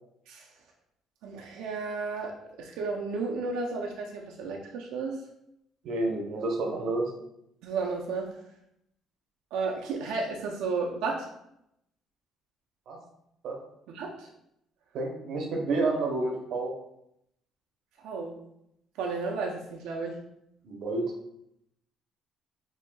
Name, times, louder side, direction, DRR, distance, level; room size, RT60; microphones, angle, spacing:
voice 1, 1.2-5.2 7.6-8.3 9.5-11.3 13.9-14.3 18.0-18.4 19.0-20.2, right 4 dB, 85° right, 0 dB, 0.5 m, -33 dB
voice 2, 5.8-7.1 12.9-13.0 13.4-13.6 14.9-16.7 20.6-21.1, right 2 dB, 50° right, 0 dB, 0.7 m, -29 dB
5.5 x 2.7 x 2.2 m, 0.79 s
cardioid pair, 175°, 0 cm